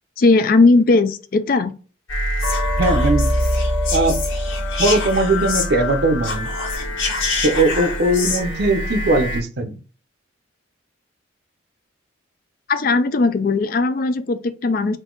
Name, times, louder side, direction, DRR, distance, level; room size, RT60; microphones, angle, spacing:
voice 1, 0.2-1.7 12.7-15.0, left 3 dB, 45° left, 0.4 m, -17 dB
sound 1, 2.1-9.4, left 1 dB, 85° left, 1.7 m, -23 dB
voice 2, 2.8-3.3 3.9-4.2 4.8-6.5 7.4-9.8, right 2 dB, 50° right, 0.6 m, -19 dB
3.8 x 2.6 x 3.7 m
head